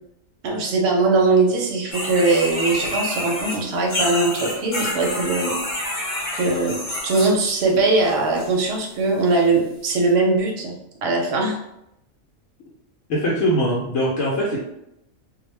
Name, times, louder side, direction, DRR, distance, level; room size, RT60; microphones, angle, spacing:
voice 1, 0.4-5.5 6.3-6.8 7.0-10.7 11.0-11.6, right 3 dB, 65° right, 0 dB, 0.7 m, -20 dB
sound 1, 1.9-7.7 8.0-8.5 9.3-9.4 9.9-10.0, left 1 dB, 40° left, 1.0 m, -28 dB
voice 2, 13.1-14.6, equal, 80° left, -5 dB, 1.0 m, -21 dB
2.4 x 2.1 x 3.1 m, 0.82 s
omnidirectional pair, 1.4 m